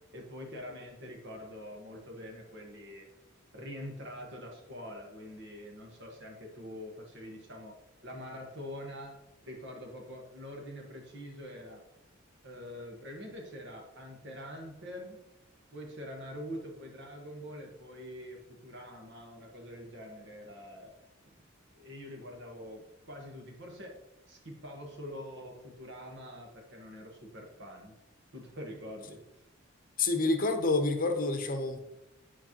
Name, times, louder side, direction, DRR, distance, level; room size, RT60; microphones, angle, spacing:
voice 1, 0.1-3.1 3.5-7.7 8.0-9.1 9.4-11.8 12.4-15.2 15.7-21.0 21.7-24.0 24.3-28.0 28.3-29.2, equal, 65° right, 1 dB, 1.4 m, -45 dB
voice 2, 30.0-31.8, left 3 dB, 45° left, 6 dB, 0.8 m, -28 dB
9.8 x 4.6 x 3.0 m, 0.98 s
head